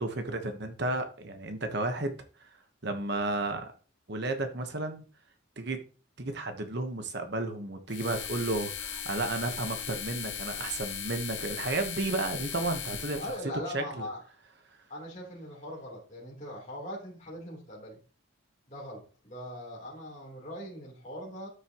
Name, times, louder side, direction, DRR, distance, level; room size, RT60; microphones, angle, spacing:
voice 1, 0.0-2.2 2.8-3.7 4.1-5.0 5.6-5.8 6.2-13.2 13.7-14.1, right 2 dB, 55° right, 1.1 m, -32 dB
sound 1, 7.9-13.4, left 8 dB, 60° left, 1.5 m, -38 dB
voice 2, 13.2-14.2 14.9-18.0 18.7-21.5, left 1 dB, 35° left, 3.5 m, -41 dB
12.5 x 6.7 x 3.0 m
head